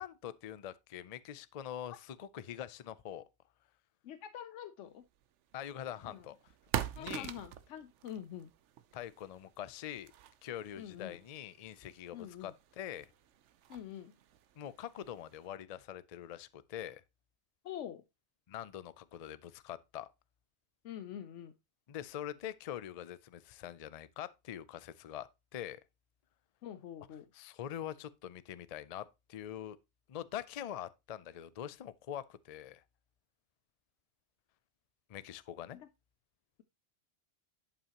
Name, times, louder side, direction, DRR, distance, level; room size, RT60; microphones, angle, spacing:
voice 1, 0.0-3.3 5.5-6.4 7.0-7.3 8.9-10.1 10.4-13.1 14.6-17.0 18.5-20.1 21.9-25.8 27.3-29.8 30.1-32.8 35.1-35.8, left 10 dB, 55° left, 0.4 m, -44 dB
voice 2, 4.0-5.0 6.1-6.3 7.0-8.5 10.8-11.2 12.1-12.5 13.7-14.1 17.6-18.0 20.8-21.5 26.6-27.3 35.7-35.9, left 10 dB, 90° left, 1.0 m, -45 dB
sound 1, 5.1-15.5, right 11 dB, 85° right, 1.0 m, -45 dB
11.0 x 5.6 x 2.9 m
omnidirectional pair, 1.2 m